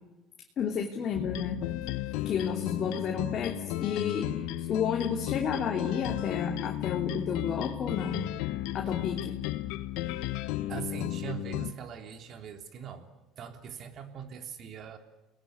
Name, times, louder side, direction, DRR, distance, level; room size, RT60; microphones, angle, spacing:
voice 1, 0.6-1.6 2.2-4.3 4.7-8.2 8.7-9.4, left 7 dB, 45° left, 2 dB, 3.0 m, -31 dB
sound 1, 1.1-11.7, left 14 dB, 75° left, 1.2 m, -34 dB
voice 2, 10.7-13.1 13.4-15.0, right 8 dB, 50° right, 6 dB, 3.5 m, -41 dB
29.5 x 20.5 x 9.6 m, 1.1 s
supercardioid pair, 100°, 0 cm